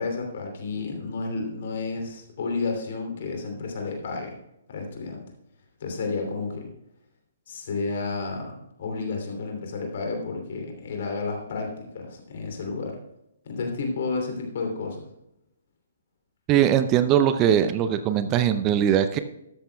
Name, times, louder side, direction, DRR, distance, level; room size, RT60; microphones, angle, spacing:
voice 1, 0.0-4.4 4.7-5.2 5.8-6.7 7.5-13.0 13.4-15.1, left 4 dB, 50° left, 2 dB, 2.9 m, -31 dB
voice 2, 16.5-19.2, right 10 dB, 25° right, 11 dB, 0.5 m, -21 dB
13.5 x 12.5 x 2.3 m, 0.85 s
figure-of-eight pair, 125°, 0 cm